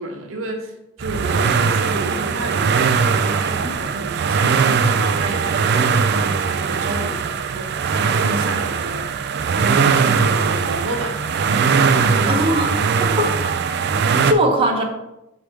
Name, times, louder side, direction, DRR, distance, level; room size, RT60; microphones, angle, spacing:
voice 1, 0.0-12.4, right 2 dB, 75° right, 2 dB, 1.1 m, -30 dB
sound 1, 1.0-14.3, right 5 dB, 55° right, 0.4 m, -20 dB
voice 2, 12.3-13.6 14.0-14.8, right 1 dB, 25° right, 0 dB, 0.9 m, -21 dB
6.3 x 3.4 x 5.9 m, 0.92 s
head